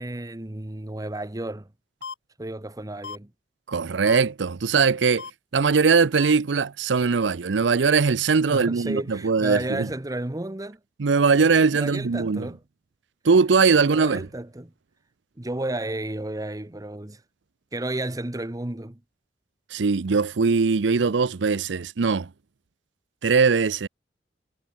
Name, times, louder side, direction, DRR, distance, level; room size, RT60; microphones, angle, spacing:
voice 1, 0.0-1.7 2.4-3.3 8.5-10.8 11.7-12.6 13.8-14.7 15.4-17.2 17.7-19.0, right 1 dB, 20° right, 1.0 m, -32 dB
sound 1, 2.0-2.1 3.0-3.2 4.1-4.2 5.2-5.3 6.2-6.3 7.2-7.3, left 5 dB, 85° left, 1.2 m, -36 dB
voice 2, 3.7-5.3 5.5-9.9 11.0-12.5 13.2-14.3 19.7-22.3 23.2-23.9, right 5 dB, 90° right, 0.6 m, -21 dB
head